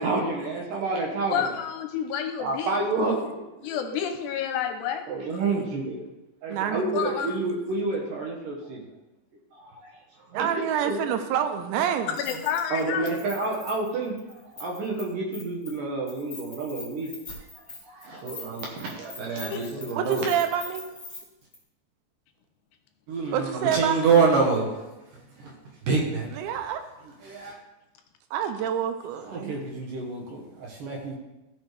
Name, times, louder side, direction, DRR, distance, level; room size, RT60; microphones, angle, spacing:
voice 1, 0.0-1.6 2.4-4.0 5.1-6.0 6.4-8.8 9.5-10.0 10.3-11.0 12.7-17.1 17.5-20.3 23.1-24.9 25.1-25.5 25.8-26.3 27.0-27.6 29.2-31.2, right 3 dB, 65° right, -1 dB, 2.4 m, -28 dB
voice 2, 1.3-2.7 3.6-5.0 6.9-7.4 12.1-13.1 19.5-19.6, left 8 dB, 85° left, 5 dB, 2.7 m, -29 dB
voice 3, 6.5-7.0 10.3-12.1 20.0-20.8 23.3-24.2 26.4-26.8 28.3-29.6, right 9 dB, 90° right, 8 dB, 3.0 m, -27 dB
Keys jangling, 12.2-12.8 13.1-15.0 15.3-15.8 16.1-21.2 21.5-21.6, left 3 dB, 20° left, 2.3 m, -42 dB
15.0 x 6.1 x 3.4 m, 1.0 s
omnidirectional pair, 5.0 m